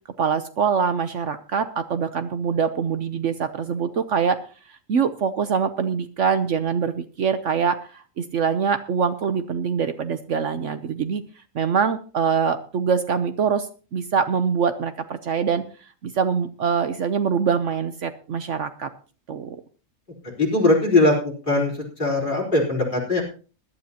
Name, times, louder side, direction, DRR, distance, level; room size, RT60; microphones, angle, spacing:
voice 1, 0.2-4.4 4.7-11.2 11.5-15.6 16.0-18.9 19.3-19.6, right 6 dB, 60° right, 10 dB, 1.1 m, -24 dB
voice 2, 20.4-21.2 21.5-23.2, left 2 dB, 35° left, -1 dB, 4.2 m, -20 dB
20.5 x 11.5 x 2.9 m, 0.37 s
omnidirectional pair, 1.5 m